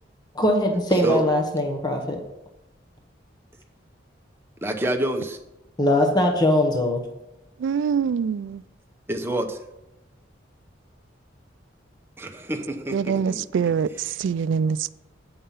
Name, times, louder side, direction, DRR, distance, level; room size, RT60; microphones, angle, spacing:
voice 1, 0.3-2.2 5.8-7.0, left 1 dB, 20° left, 2 dB, 0.9 m, -21 dB
voice 2, 4.6-5.4 9.1-9.6 12.2-14.1, right 1 dB, 10° right, 3 dB, 0.8 m, -28 dB
voice 3, 7.6-8.6 12.9-14.9, right 6 dB, 80° right, 18 dB, 0.3 m, -24 dB
8.7 x 5.5 x 5.6 m, 0.93 s
head